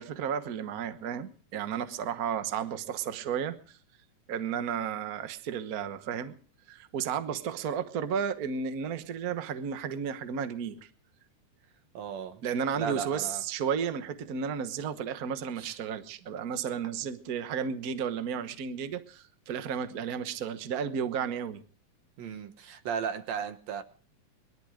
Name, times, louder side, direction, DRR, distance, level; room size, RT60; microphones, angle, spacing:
voice 1, 0.0-3.8 4.3-6.4 6.7-10.9 12.4-21.6, right 7 dB, 90° right, 9 dB, 0.8 m, -33 dB
voice 2, 11.9-12.4 12.7-13.4 15.6-15.8 22.2-23.8, right 7 dB, 65° right, 9 dB, 2.4 m, -35 dB
21.5 x 13.0 x 5.0 m, 0.43 s
omnidirectional pair, 3.6 m